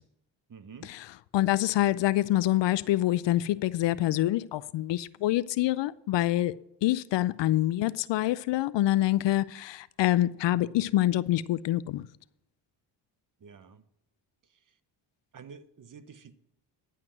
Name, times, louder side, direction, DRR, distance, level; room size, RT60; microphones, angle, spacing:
voice 1, 0.5-0.9 13.4-13.8 14.5-14.7 15.3-16.3, right 6 dB, 40° right, 1.0 m, -49 dB
voice 2, 1.3-6.5 6.8-12.1, left 15 dB, 60° left, 0.5 m, -26 dB
11.0 x 5.8 x 7.5 m
supercardioid pair, 45°, 50 cm